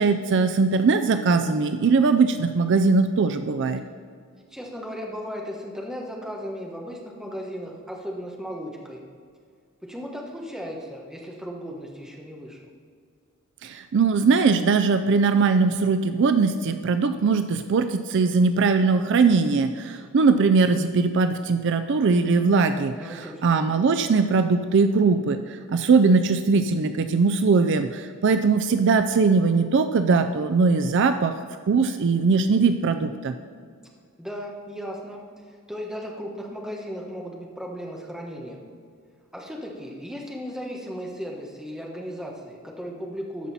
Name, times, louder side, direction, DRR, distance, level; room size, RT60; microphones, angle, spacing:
voice 1, 0.0-3.8 13.6-31.3 31.7-33.3, right 4 dB, 55° right, 9 dB, 0.4 m, -20 dB
voice 2, 4.5-9.0 9.8-12.6 22.9-23.6 34.2-38.6 39.3-43.5, equal, 5° right, -1 dB, 1.2 m, -36 dB
13.5 x 5.5 x 4.2 m, 2.1 s
head